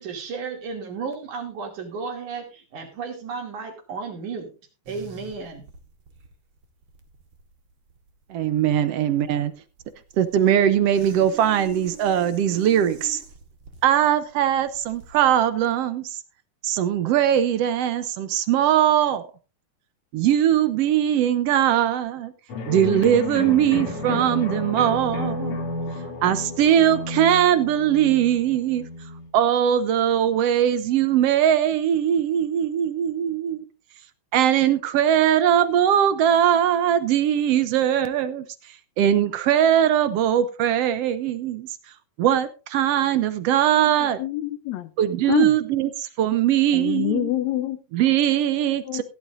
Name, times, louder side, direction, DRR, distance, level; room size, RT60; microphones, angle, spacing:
voice 1, 0.0-4.5 4.9-5.6, right 5 dB, 90° right, 4.2 m, -33 dB
sound 1, 4.9-15.5, right 4 dB, 50° right, 2.3 m, -46 dB
voice 2, 8.3-9.5 10.2-13.2 13.8-16.2 16.6-19.3 20.1-22.3 22.7-25.7 26.2-28.9 29.3-33.6 34.3-38.4 39.0-41.7 42.2-44.2 45.0-47.3 47.9-49.0, right 10 dB, 70° right, 1.5 m, -20 dB
sound 2, 22.5-29.3, left 3 dB, 55° left, 3.4 m, -31 dB
voice 3, 44.2-44.9 45.3-45.5 46.7-47.8 48.9-49.0, left 14 dB, 75° left, 1.9 m, -25 dB
16.0 x 11.5 x 2.6 m
omnidirectional pair, 3.4 m